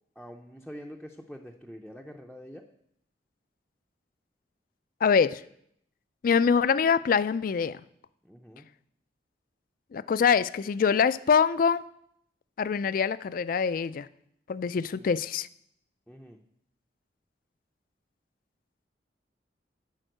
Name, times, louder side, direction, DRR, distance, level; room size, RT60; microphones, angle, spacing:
voice 1, 0.2-2.7 8.2-8.7 14.9-15.1 16.1-16.4, equal, ahead, 0.5 m, -45 dB
voice 2, 5.0-5.4 6.2-7.8 9.9-11.8 12.6-14.1 14.5-15.5, left 6 dB, 50° left, 0.3 m, -24 dB
10.5 x 4.6 x 7.8 m
head